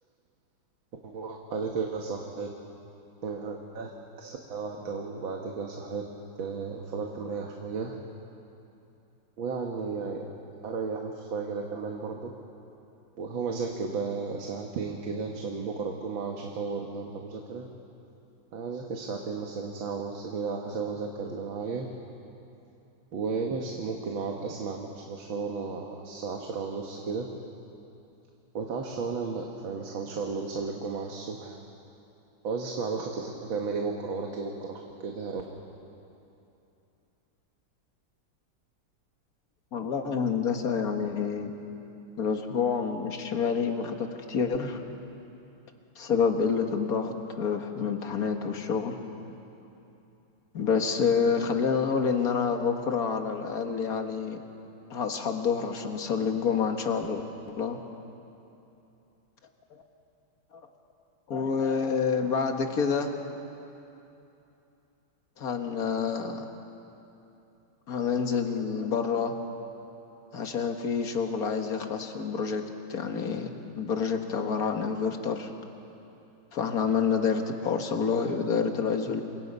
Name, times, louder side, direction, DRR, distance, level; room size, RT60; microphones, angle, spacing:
voice 1, 1.0-2.5 3.2-3.9 4.2-6.0 6.4-8.0 9.4-10.3 10.6-12.3 13.2-17.7 18.5-21.9 23.1-27.3 28.5-31.6 32.4-35.4, right 4 dB, 75° right, 1 dB, 2.2 m, -34 dB
voice 2, 39.7-41.5 42.2-44.8 46.0-49.0 50.5-54.4 54.9-57.8 59.7-59.8 60.5-60.6 61.3-63.1 65.4-66.4 67.9-69.3 70.3-72.6 72.9-73.5 73.8-75.5 76.5-79.2, left 6 dB, 50° left, 5 dB, 1.9 m, -28 dB
29.0 x 24.5 x 5.5 m, 2.8 s
omnidirectional pair, 2.2 m